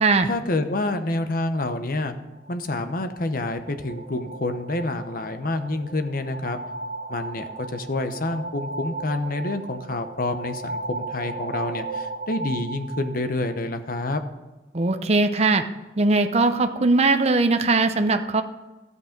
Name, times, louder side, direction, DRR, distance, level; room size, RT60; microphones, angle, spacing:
voice 1, 0.3-2.1 2.5-6.6 7.1-14.2, left 2 dB, 55° left, 8 dB, 0.9 m, -28 dB
sound 1, 2.3-14.0, right 3 dB, 55° right, 2.0 m, -36 dB
voice 2, 14.7-15.6 16.0-18.4, right 3 dB, 35° right, 7 dB, 0.7 m, -20 dB
12.5 x 8.3 x 5.2 m, 1.1 s
head